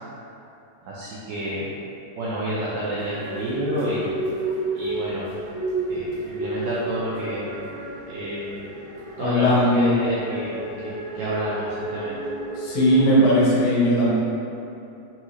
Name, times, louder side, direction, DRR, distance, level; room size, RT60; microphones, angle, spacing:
voice 1, 0.8-1.7 2.2-4.2 4.7-5.3 5.9-7.5 8.1-8.7 9.2-12.2, right 1 dB, 85° right, -7 dB, 1.9 m, -29 dB
sound 1, 3.0-13.6, right 2 dB, 70° right, 2.4 m, -31 dB
voice 2, 9.2-9.8 12.6-14.2, equal, 75° left, -7 dB, 2.3 m, -18 dB
5.9 x 2.7 x 3.0 m, 2.9 s
omnidirectional pair, 4.4 m